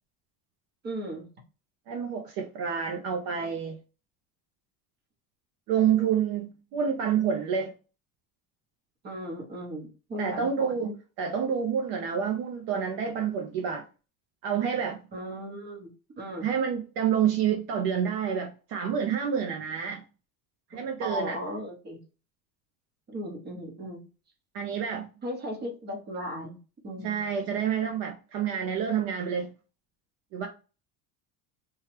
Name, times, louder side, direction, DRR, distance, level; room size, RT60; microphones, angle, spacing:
voice 1, 0.8-1.3 9.0-10.9 15.1-16.5 20.7-22.0 23.1-24.1 25.2-26.6 26.8-27.2, equal, 25° right, 0.9 m, -37 dB
voice 2, 1.9-3.8 5.7-7.7 10.2-13.8 14.4-15.0 16.4-20.0 20.7-21.4 24.5-25.1 27.0-29.5 30.3-30.5, right 7 dB, 55° right, 0.6 m, -28 dB
2.9 x 2.4 x 3.1 m
cardioid pair, 160°, 42 cm